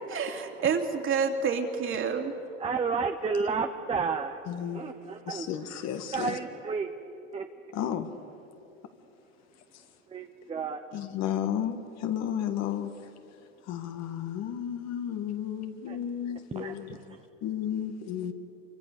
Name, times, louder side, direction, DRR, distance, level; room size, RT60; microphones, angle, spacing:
voice 1, 0.1-2.3, right 6 dB, 35° right, 3.0 m, -28 dB
voice 2, 2.6-4.4 4.7-5.5 6.1-6.9 7.3-7.5 10.1-10.8 15.9-16.0 16.5-17.0, right 5 dB, 15° right, 1.1 m, -31 dB
voice 3, 4.5-4.8 5.3-6.4 7.7-8.1 9.7-9.8 10.9-13.0 13.7-18.3, left 9 dB, 45° left, 1.9 m, -33 dB
27.5 x 25.0 x 6.9 m
hypercardioid pair, 100°, 38 cm